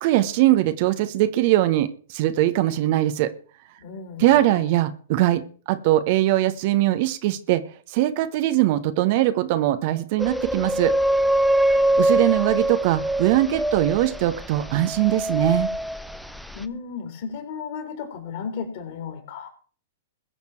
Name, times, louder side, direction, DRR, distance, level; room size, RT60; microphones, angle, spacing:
voice 1, 0.0-3.3 4.2-7.6 7.9-10.9 11.7-15.7, right 14 dB, 40° right, 11 dB, 1.1 m, -21 dB
voice 2, 3.8-4.7 16.5-19.5, left 6 dB, 45° left, 5 dB, 4.1 m, -34 dB
sound 1, 10.2-16.6, right 1 dB, ahead, 0.7 m, -23 dB
21.0 x 7.3 x 4.5 m, 0.41 s
figure-of-eight pair, 105°, 0 cm